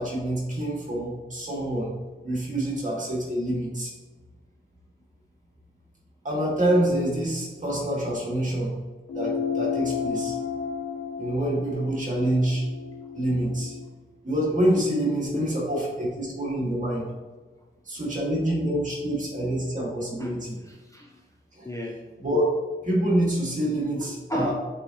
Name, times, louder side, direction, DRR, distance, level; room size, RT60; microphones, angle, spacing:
voice 1, 0.0-1.9 2.2-3.9 6.2-8.7 9.1-10.4 11.2-12.7 13.1-13.8 14.2-17.1 17.9-20.6 21.6-21.7 22.2-22.4 22.8-24.5, right 1 dB, 40° right, -4 dB, 2.0 m, -26 dB
sound 1, 9.1-13.9, left 6 dB, 90° left, 0.6 m, -32 dB
voice 2, 20.2-21.2 21.6-22.0 24.0-24.5, left 1 dB, 15° left, 0 dB, 0.5 m, -33 dB
8.5 x 3.8 x 3.0 m, 1.3 s
wide cardioid pair, 140°, 21 cm